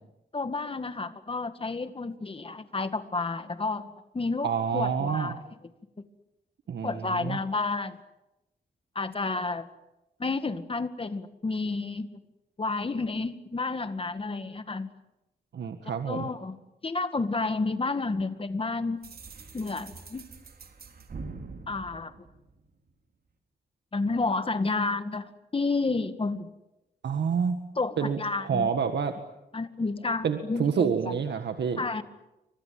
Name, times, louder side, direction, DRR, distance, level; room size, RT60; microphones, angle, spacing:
voice 1, 0.3-5.3 6.8-8.0 9.0-9.7 10.2-12.2 12.6-14.9 16.1-16.6 16.8-19.0 19.5-20.3 21.7-22.1 23.9-26.5 27.8-28.7 29.5-31.1 31.8-32.0, left 3 dB, 30° left, 10 dB, 2.0 m, -30 dB
voice 2, 4.4-5.4 6.7-7.4 15.5-16.3 27.0-27.6 28.0-29.2 30.2-31.8, right 6 dB, 90° right, 6 dB, 1.8 m, -28 dB
sound 1, 19.0-22.9, right 4 dB, 60° right, 3.7 m, -44 dB
29.5 x 25.0 x 7.8 m, 0.96 s
wide cardioid pair, 110°, 17 cm